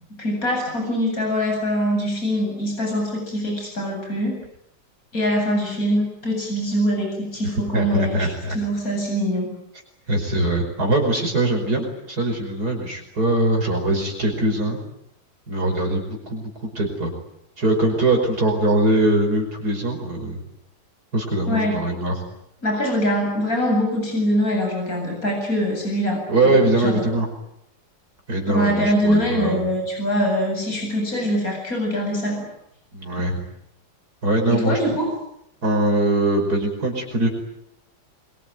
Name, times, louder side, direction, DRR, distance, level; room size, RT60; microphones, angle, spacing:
voice 1, 0.2-4.4 5.1-9.5 21.5-21.8 22.6-27.1 28.5-32.4 34.5-35.1, equal, 50° left, 1 dB, 8.6 m, -23 dB
voice 2, 7.7-8.6 10.1-14.8 15.5-17.1 17.6-20.4 21.1-22.1 26.3-27.3 28.3-29.7 32.9-33.4 34.2-34.8 35.6-37.3, right 1 dB, 60° right, 1 dB, 5.9 m, -22 dB
25.0 x 23.5 x 9.3 m, 0.78 s
omnidirectional pair, 1.9 m